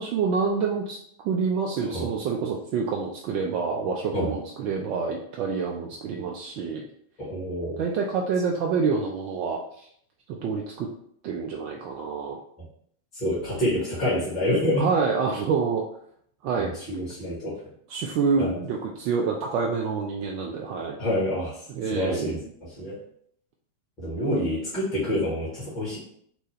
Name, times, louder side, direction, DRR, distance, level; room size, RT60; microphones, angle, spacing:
voice 1, 0.0-6.9 7.8-9.9 10.3-10.9 11.2-12.4 14.8-15.8 16.4-16.7 17.9-21.0 21.7-22.4, right 5 dB, 45° right, 0 dB, 0.3 m, -27 dB
voice 2, 7.2-7.8 13.1-14.9 16.6-17.5 18.4-18.5 21.0-21.6 21.9-23.0 24.0-26.0, left 1 dB, 35° left, -9 dB, 1.4 m, -27 dB
2.9 x 2.2 x 3.2 m, 0.67 s
figure-of-eight pair, 90°, 0 cm